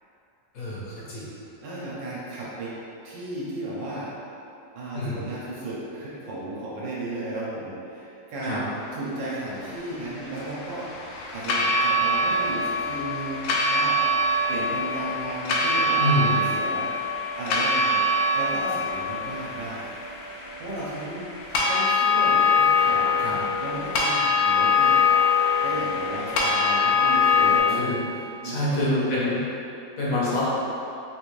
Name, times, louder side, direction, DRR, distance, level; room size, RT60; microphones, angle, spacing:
voice 1, 0.5-1.3 4.9-5.2 8.4-8.6 16.0-16.3 23.2-23.4 27.7-28.0 28.4-29.4 30.0-30.4, left 1 dB, 55° left, -8 dB, 1.2 m, -26 dB
voice 2, 1.6-2.7 3.0-4.1 4.7-8.7 8.9-16.9 17.4-19.9 20.2-21.2 21.6-23.2 23.6-25.0 25.6-29.4, right 2 dB, 80° right, -7 dB, 1.4 m, -34 dB
sound 1, 9.6-27.6, left 3 dB, 85° left, 1.3 m, -23 dB
3.7 x 2.6 x 3.1 m, 2.7 s
omnidirectional pair, 2.0 m